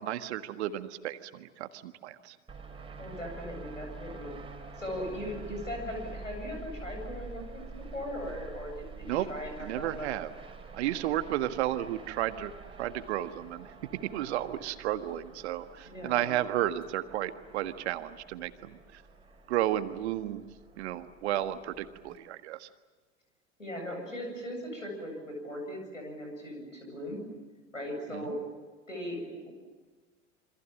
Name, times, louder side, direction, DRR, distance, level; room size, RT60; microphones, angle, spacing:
voice 1, 0.0-2.4 9.0-9.3 9.6-10.3 10.7-12.5 12.8-13.7 14.1-19.0 19.5-20.5 20.8-22.7 28.1-28.4, right 13 dB, 60° right, 10 dB, 1.7 m, -33 dB
sound 1, 2.5-22.2, right 3 dB, 15° right, 4.5 m, -47 dB
voice 2, 3.0-4.3 4.8-7.6 7.9-10.1 15.8-16.3 23.6-27.2 27.7-28.4 28.9-29.5, equal, 85° left, 2 dB, 8.0 m, -39 dB
28.0 x 25.5 x 7.6 m, 1.3 s
figure-of-eight pair, 75°, 37 cm